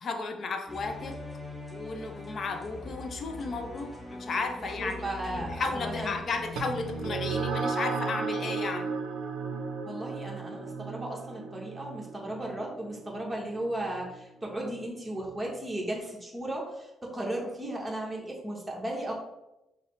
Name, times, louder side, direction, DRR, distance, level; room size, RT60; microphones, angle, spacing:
voice 1, 0.0-1.2 1.7-5.1 5.3-8.9, left 4 dB, 50° left, 5 dB, 0.6 m, -34 dB
sound 1, 0.7-7.5, left 2 dB, 10° left, 0.7 m, -41 dB
voice 2, 4.6-6.2 9.8-19.1, right 1 dB, 15° right, -2 dB, 1.1 m, -35 dB
sound 2, 6.6-15.4, right 4 dB, 85° right, 0.5 m, -35 dB
5.5 x 2.0 x 3.1 m, 0.92 s
cardioid pair, 90°, 0 cm